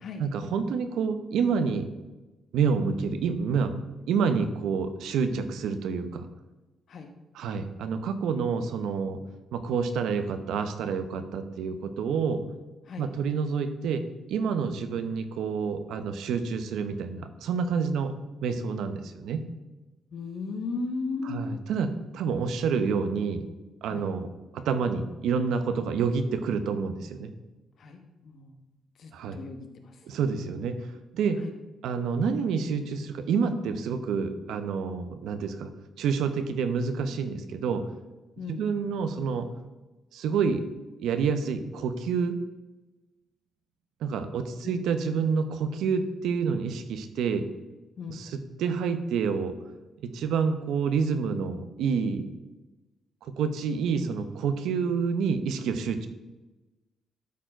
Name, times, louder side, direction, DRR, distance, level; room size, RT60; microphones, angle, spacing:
voice 1, 0.2-1.9 2.5-3.7 4.1-6.3 7.3-9.2 9.5-12.4 13.0-18.1 18.4-19.4 21.2-23.4 23.8-27.3 29.1-29.4 30.0-30.8 31.1-31.4 31.8-35.7 36.0-37.9 38.5-39.5 40.1-40.6 41.0-42.3 44.0-47.5 48.1-49.6 50.0-52.3 53.2-56.1, right 5 dB, 85° right, 9 dB, 0.8 m, -28 dB
voice 2, 20.1-21.6 23.9-24.1 27.8-28.6 29.0-30.0 31.4-31.5 38.4-38.7 44.6-44.8 48.0-48.2, left 4 dB, 60° left, 5 dB, 1.3 m, -36 dB
12.0 x 4.6 x 4.5 m, 1.1 s
cardioid pair, 85°, 0 cm